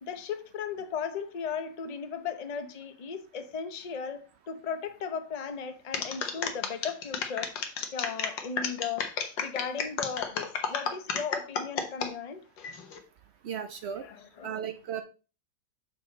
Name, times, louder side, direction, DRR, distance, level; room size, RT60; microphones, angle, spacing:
voice 1, 0.0-7.5 7.9-9.1 9.4-12.4 14.0-14.6, left 6 dB, 45° left, 0.5 m, -36 dB
sound 1, 5.9-12.1 12.6-13.0, left 6 dB, 90° left, 1.7 m, -32 dB
voice 2, 13.4-14.0 14.4-15.0, right 8 dB, 85° right, 0.5 m, -35 dB
6.9 x 5.6 x 4.0 m
omnidirectional pair, 1.9 m